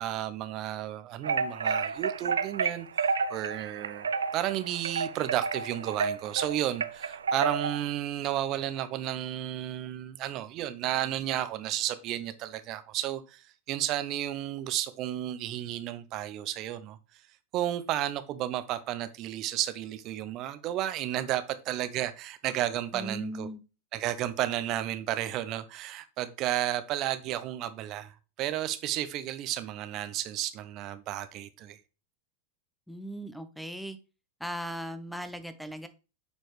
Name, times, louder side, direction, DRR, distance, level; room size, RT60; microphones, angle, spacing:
voice 1, 0.0-17.0 17.5-23.5 23.9-31.8, right 13 dB, 45° right, 0.7 m, -32 dB
sound 1, 1.2-7.9, right 5 dB, 80° right, 0.4 m, -31 dB
voice 2, 22.9-23.6 32.9-34.0 34.4-35.9, equal, ahead, 0.7 m, -38 dB
7.1 x 4.4 x 3.2 m
hypercardioid pair, 95°, 0 cm